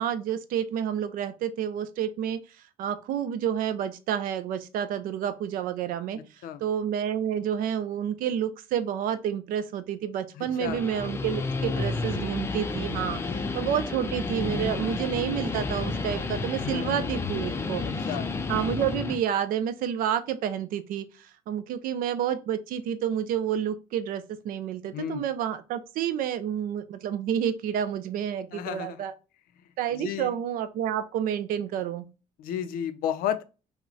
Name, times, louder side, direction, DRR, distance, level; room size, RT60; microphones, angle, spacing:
voice 1, 0.0-18.1 18.5-29.1 29.8-32.1, right 9 dB, 70° right, 0.6 m, -29 dB
voice 2, 10.4-10.8 13.2-13.5 16.6-17.0 18.1-18.3 24.9-25.2 28.5-29.0 29.9-30.3 32.4-33.4, left 9 dB, 75° left, 0.6 m, -32 dB
Guitar, 10.5-19.2, left 3 dB, 15° left, 0.4 m, -31 dB
5.9 x 2.2 x 4.0 m
cardioid pair, 160°, 15 cm